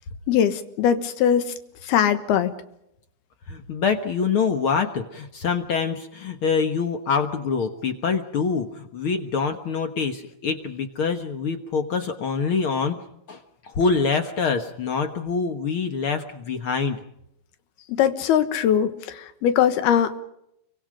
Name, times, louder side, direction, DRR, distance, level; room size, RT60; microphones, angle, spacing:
voice 1, 0.3-1.5 1.8-2.5 17.9-20.2, left 9 dB, 85° left, 9 dB, 3.3 m, -21 dB
voice 2, 3.5-13.0 13.3-17.0, left 5 dB, 70° left, 6 dB, 1.2 m, -25 dB
29.5 x 24.5 x 5.1 m, 0.78 s
omnidirectional pair, 4.4 m